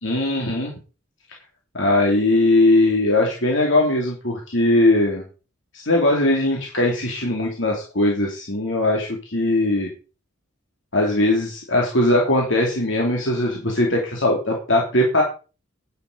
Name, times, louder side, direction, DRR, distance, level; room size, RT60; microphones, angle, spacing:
voice 1, 0.0-0.7 1.7-5.2 5.7-9.9 10.9-15.2, left 1 dB, 60° left, 0 dB, 3.1 m, -20 dB
10.5 x 10.5 x 5.2 m, 0.35 s
head